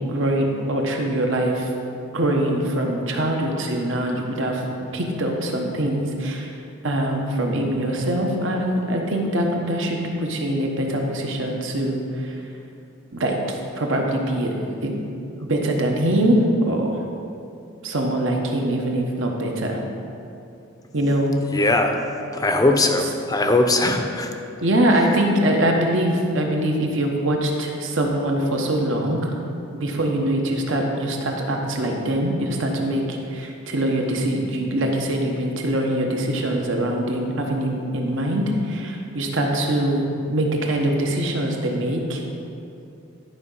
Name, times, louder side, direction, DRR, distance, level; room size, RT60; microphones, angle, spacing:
voice 1, 0.1-1.7 2.1-4.6 4.9-6.5 6.8-12.3 13.1-14.5 14.8-14.9 15.5-16.4 16.7-17.0 17.8-19.8 20.9-21.3 24.6-29.4 29.7-42.2, right 1 dB, 70° right, 1 dB, 1.2 m, -23 dB
voice 2, 21.4-22.0 22.3-24.3 24.9-25.2, left 2 dB, 20° left, 4 dB, 0.6 m, -20 dB
11.5 x 5.1 x 5.6 m, 2.7 s
head